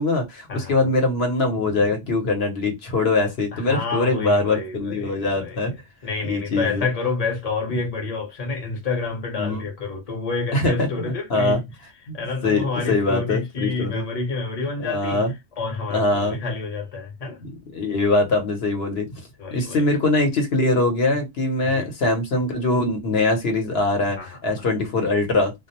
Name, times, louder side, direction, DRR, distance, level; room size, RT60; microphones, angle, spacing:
voice 1, 0.0-5.7 6.2-6.8 9.4-9.7 10.5-10.9 11.3-11.6 12.1-12.2 12.4-14.0 14.8-15.3 15.9-16.4 17.4-19.1 19.5-25.5, left 2 dB, 60° left, 1.1 m, -22 dB
voice 2, 3.5-5.6 6.0-11.6 12.1-15.2 15.6-17.4 19.4-19.9 21.6-21.9 24.2-24.4, left 4 dB, 35° left, 0.9 m, -28 dB
2.4 x 2.0 x 2.8 m
omnidirectional pair, 1.2 m